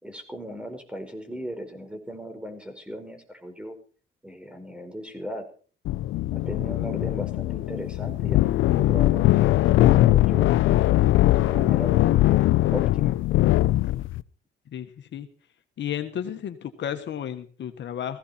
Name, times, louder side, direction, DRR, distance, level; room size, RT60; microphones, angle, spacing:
voice 1, 0.0-3.8 4.2-5.5 6.3-10.5 11.1-12.4 12.7-13.2, equal, 5° right, 5 dB, 4.6 m, -37 dB
sound 1, 5.8-14.2, left 15 dB, 85° left, 0.6 m, -21 dB
voice 2, 14.7-15.3 15.8-18.2, left 9 dB, 65° left, 8 dB, 1.5 m, -33 dB
17.0 x 15.5 x 4.3 m, 0.42 s
cardioid pair, 90°, 20 cm